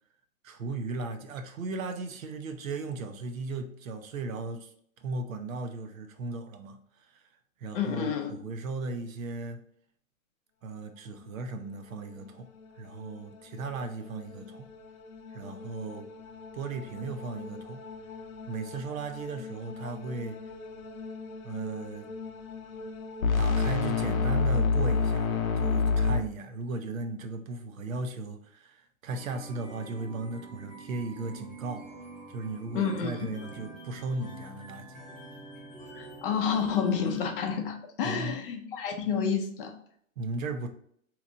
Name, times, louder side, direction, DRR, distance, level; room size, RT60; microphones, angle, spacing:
voice 1, 0.4-7.3 7.6-9.6 10.6-12.5 12.7-14.7 15.3-16.1 16.5-17.8 18.5-20.4 21.4-22.1 23.4-31.9 32.3-35.0 38.0-38.4 40.2-40.7, right 3 dB, 70° right, 0.7 m, -36 dB
voice 2, 7.7-8.4 32.7-33.3 35.9-39.7, left 6 dB, 40° left, 0.6 m, -29 dB
sound 1, 12.6-12.7 13.0-13.2 13.5-26.2, left 4 dB, 80° left, 0.6 m, -31 dB
sound 2, 29.1-37.3, right 2 dB, 5° right, 0.8 m, -46 dB
2.9 x 2.4 x 3.8 m
hypercardioid pair, 125°, 41 cm